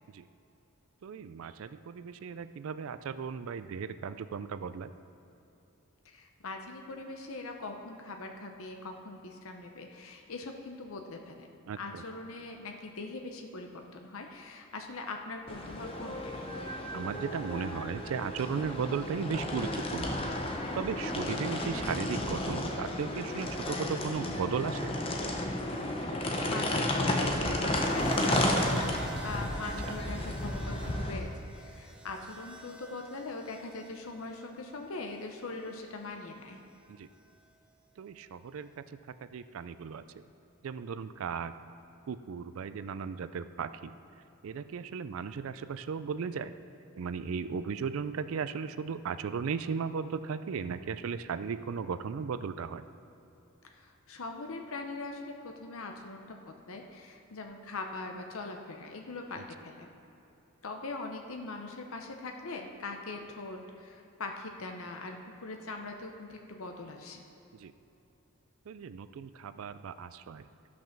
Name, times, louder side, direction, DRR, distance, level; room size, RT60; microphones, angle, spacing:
voice 1, 1.0-4.9 11.7-12.0 16.9-20.2 20.7-24.9 29.8-29.9 36.9-37.1 38.0-40.2 40.6-41.5 42.1-43.9 44.4-46.5 47.0-52.8 59.4-59.5 67.5-67.7 68.7-70.5, right 6 dB, 65° right, 13 dB, 0.3 m, -36 dB
voice 2, 6.0-11.5 11.8-16.2 25.9-31.3 31.6-36.6 53.6-59.9 60.6-67.3, left 3 dB, 65° left, 3 dB, 0.8 m, -41 dB
sound 1, 15.5-31.2, left 1 dB, 25° left, 0.8 m, -32 dB
sound 2, 27.8-35.9 37.1-37.5, right 4 dB, 5° right, 0.5 m, -48 dB
13.5 x 6.1 x 5.9 m, 2.9 s
head